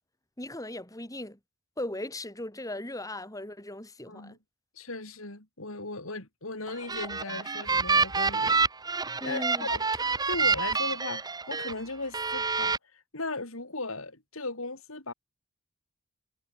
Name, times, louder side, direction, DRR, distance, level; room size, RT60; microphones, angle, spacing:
voice 1, 0.4-1.4 1.8-4.4 9.2-9.7, left 1 dB, 15° left, 5.7 m, -37 dB
voice 2, 4.1-4.4 4.8-8.6 9.2-15.1, left 3 dB, 80° left, 5.2 m, -37 dB
sound 1, 6.7-11.7 12.1-12.8, right 4 dB, 20° right, 1.2 m, -27 dB
head